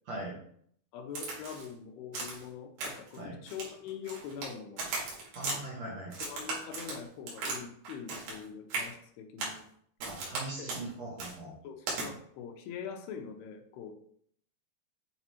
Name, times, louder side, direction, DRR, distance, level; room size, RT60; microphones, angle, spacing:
voice 1, 0.9-4.9 6.2-9.6 10.6-10.7 11.6-13.9, left 7 dB, 90° left, 4 dB, 2.8 m, -43 dB
Crack, 1.2-1.7 2.1-2.5 2.8-3.2 3.5-4.5 4.8-5.6 6.1-7.6 7.9-8.4 8.7-8.9 9.4-9.6 10.0-10.4 10.7-10.8 11.2-11.3 11.9-12.1, right 3 dB, 85° right, 3.7 m, -37 dB
voice 2, 5.3-6.2 10.1-11.6, right 1 dB, 55° right, -5 dB, 2.1 m, -40 dB
8.6 x 4.1 x 3.0 m, 0.64 s
omnidirectional pair, 4.4 m